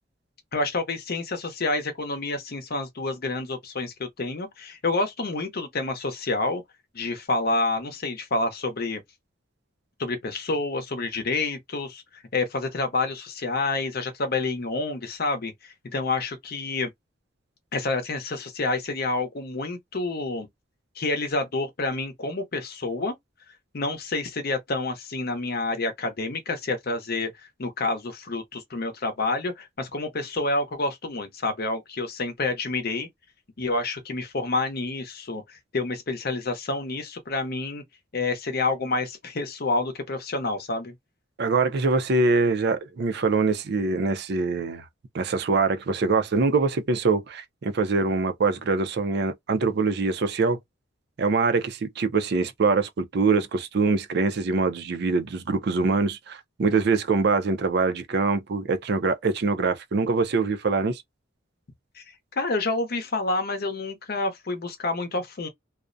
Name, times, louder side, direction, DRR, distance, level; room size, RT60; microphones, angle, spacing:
voice 1, 0.5-6.6 6.9-9.0 10.0-16.9 17.7-20.5 21.0-23.1 23.7-27.3 27.6-33.1 33.6-37.8 38.1-40.9 61.9-62.0 62.3-65.5, left 3 dB, 50° left, 0.7 m, -28 dB
voice 2, 41.4-44.8 45.1-50.6 51.2-61.0, right 4 dB, 55° right, 0.4 m, -24 dB
2.4 x 2.0 x 2.5 m
head